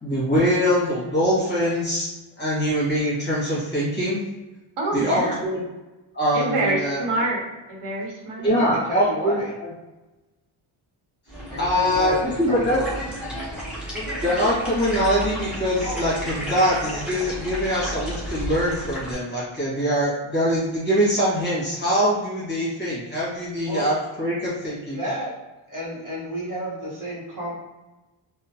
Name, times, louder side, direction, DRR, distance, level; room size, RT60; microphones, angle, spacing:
voice 1, 0.0-2.1 2.4-4.2 4.9-5.6 6.1-7.0 8.4-9.4 9.6-9.7 11.6-12.8 14.2-25.0, equal, 20° left, -8 dB, 1.2 m, -23 dB
voice 2, 4.8-5.4 6.3-7.4 7.7-8.5, right 2 dB, 80° right, -2 dB, 1.0 m, -26 dB
voice 3, 8.4-9.5 11.5-12.9 23.6-23.9 24.9-25.3 25.7-27.5, right 1 dB, 40° right, -6 dB, 1.2 m, -31 dB
sound 1, 11.3-19.1, right 1 dB, ahead, 0.9 m, -32 dB
2.9 x 2.2 x 2.7 m, 1.1 s
wide cardioid pair, 145°, 49 cm